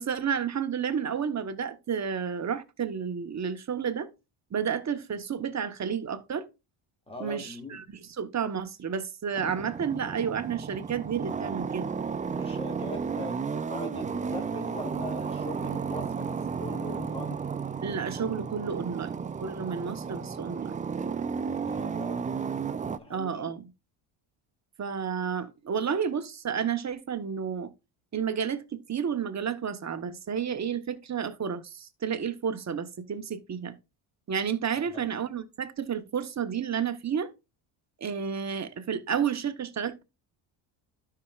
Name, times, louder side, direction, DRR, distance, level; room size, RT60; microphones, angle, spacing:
voice 1, 0.0-4.1 4.5-6.5 7.2-11.9 17.8-20.8 23.1-23.7 24.8-27.7 28.1-33.7 34.3-37.3 38.0-40.0, right 7 dB, 35° right, 1.1 m, -31 dB
voice 2, 7.1-7.8 12.3-17.4 21.5-22.3 22.9-23.4 34.9-35.1, left 1 dB, 10° left, 2.2 m, -41 dB
sound 1, 9.3-23.0, right 6 dB, 20° right, 0.3 m, -33 dB
12.5 x 5.9 x 2.4 m
cardioid pair, 95°, 50 cm